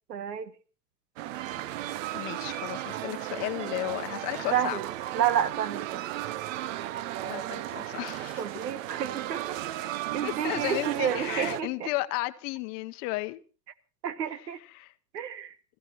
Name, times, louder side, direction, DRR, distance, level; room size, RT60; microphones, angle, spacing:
voice 1, 0.1-0.5 4.5-4.9 5.1-6.0 8.4-11.9 14.0-14.6 15.1-15.6, right 9 dB, 85° right, 1.3 m, -30 dB
sound 1, 1.2-11.6, right 13 dB, 55° right, 0.8 m, -35 dB
voice 2, 2.1-4.8 7.3-8.6 10.2-13.4 14.4-14.9, left 20 dB, 35° left, 0.9 m, -34 dB
27.0 x 14.5 x 3.0 m
hypercardioid pair, 130°, 48 cm